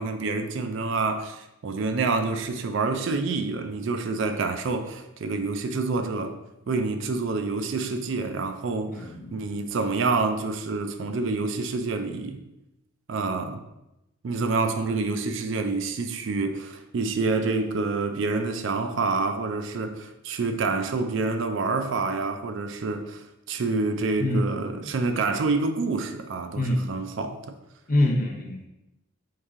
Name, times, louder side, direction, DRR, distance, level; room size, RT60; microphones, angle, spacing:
voice 1, 0.0-6.3 6.7-12.4 13.1-13.6 14.2-27.5, right 3 dB, 60° right, 0.4 m, -27 dB
voice 2, 8.9-9.4 24.2-24.9 26.5-26.9 27.9-28.7, left 1 dB, 40° left, 0.6 m, -26 dB
4.7 x 2.7 x 3.6 m
head